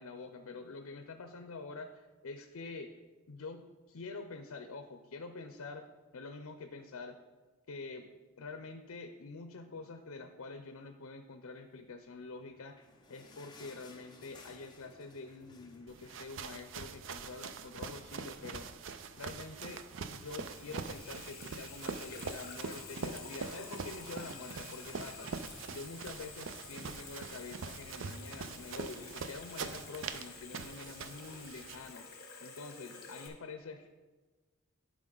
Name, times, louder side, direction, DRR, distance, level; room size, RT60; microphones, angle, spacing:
voice 1, 0.0-1.9 2.2-2.9 3.3-5.9 6.1-7.2 7.7-8.1 8.4-18.7 19.2-25.4 25.7-32.1 32.4-33.9, left 3 dB, 80° left, 7 dB, 0.5 m, -46 dB
sound 1, 12.3-17.1 17.4-17.5 17.8-18.0 18.6-18.7, left 3 dB, 20° left, 0.8 m, -58 dB
sound 2, 15.9-31.9, right 5 dB, 60° right, 0.4 m, -43 dB
Water tap faucet / Sink (filling or washing), 19.7-33.3, left 5 dB, 45° left, 1.2 m, -51 dB
11.0 x 5.1 x 3.9 m, 1.3 s
head